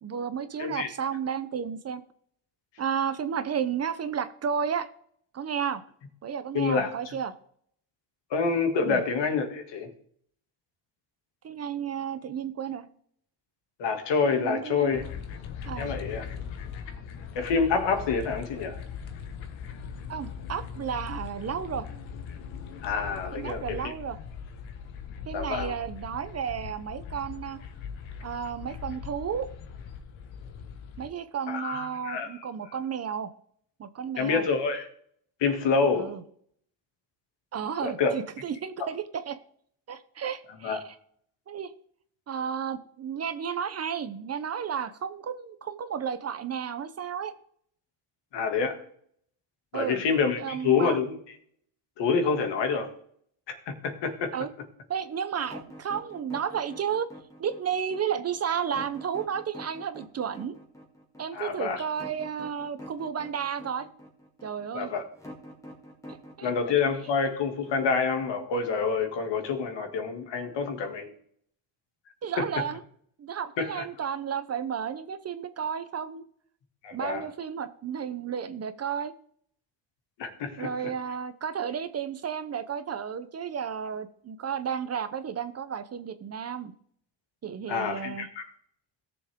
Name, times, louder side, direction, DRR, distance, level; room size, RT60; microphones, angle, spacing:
voice 1, 0.0-2.0 2.8-4.9 5.3-5.8 6.2-7.3 8.8-9.0 11.4-12.8 14.4-14.9 15.6-15.9 20.1-21.9 23.3-24.2 25.3-27.6 28.2-29.5 31.0-33.3 33.8-34.5 36.0-36.2 37.5-39.4 39.9-40.8 41.5-41.7 42.3-47.3 49.7-50.0 50.4-51.0 54.3-54.5 54.9-57.1 57.4-60.6 61.2-63.9 64.4-64.9 66.1-66.5 72.2-72.8 73.2-76.2 76.9-79.1 80.6-86.7 87.4-88.3, right 7 dB, 35° right, 0.6 m, -32 dB
voice 2, 0.6-0.9 6.5-6.9 8.3-9.9 13.8-15.0 15.8-16.2 17.3-18.8 22.8-23.9 25.3-25.8 31.5-32.7 34.2-34.9 35.4-36.1 37.8-38.1 40.6-40.8 48.3-48.8 49.7-51.2 52.0-52.9 53.5-54.3 61.3-61.8 64.7-65.0 66.4-71.1 72.4-72.5 73.6-73.8 76.8-77.2 80.2-80.9 87.7-88.4, left 5 dB, 65° left, 2.3 m, -27 dB
sound 1, 14.9-31.1, left 7 dB, 80° left, 1.6 m, -40 dB
sound 2, 55.4-68.3, equal, 5° left, 2.2 m, -46 dB
17.5 x 7.0 x 3.6 m
cardioid pair, 150°, 46 cm